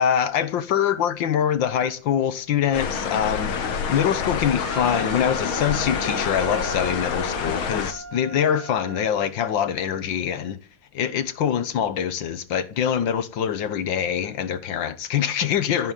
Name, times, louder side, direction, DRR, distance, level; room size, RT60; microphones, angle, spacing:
voice 1, 0.0-10.6 10.9-15.9, left 9 dB, 70° left, 1.8 m, -24 dB
sound 1, 2.7-7.9, left 6 dB, 90° left, 2.3 m, -27 dB
Wind instrument woodwind instrument, 4.6-9.1, right 2 dB, 10° right, 0.7 m, -38 dB
15.0 x 8.9 x 9.2 m
omnidirectional pair, 2.2 m